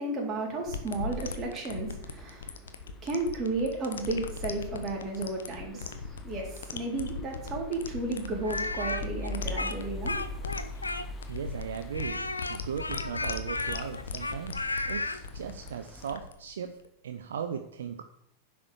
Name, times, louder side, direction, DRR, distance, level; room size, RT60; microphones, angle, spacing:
voice 1, 0.0-2.7 3.0-10.2, right 2 dB, 30° right, -1 dB, 4.0 m, -33 dB
sound 1, 0.7-16.9, left 4 dB, 65° left, 1.1 m, -39 dB
sound 2, 1.7-16.2, left 1 dB, 20° left, 1.2 m, -45 dB
Speech, 8.4-11.3 11.9-15.2, left 2 dB, 80° left, 0.7 m, -33 dB
voice 2, 11.3-16.8 17.0-18.0, right 7 dB, 65° right, 7 dB, 0.7 m, -38 dB
10.5 x 6.0 x 7.2 m, 0.76 s
figure-of-eight pair, 90°, 0 cm